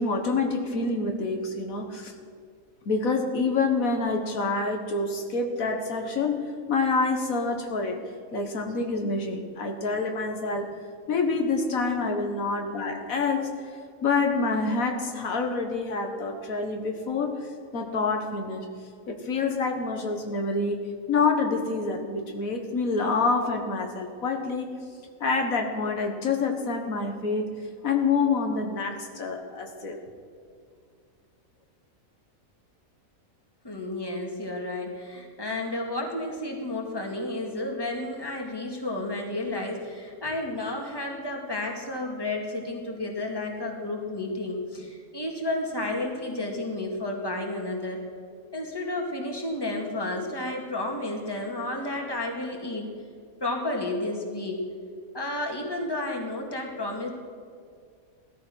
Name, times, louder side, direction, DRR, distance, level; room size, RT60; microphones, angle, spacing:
voice 1, 0.0-2.2 2.9-6.4 6.7-8.0 8.3-10.7 11.1-13.7 14.0-18.7 19.1-20.8 21.1-24.8 25.2-27.5 27.8-30.0, left 4 dB, 75° left, 4 dB, 1.8 m, -27 dB
voice 2, 33.6-48.0 48.5-52.9 53.4-54.7 55.1-57.1, left 2 dB, 15° left, 1 dB, 2.2 m, -31 dB
17.5 x 13.0 x 6.3 m, 2.1 s
omnidirectional pair, 1.5 m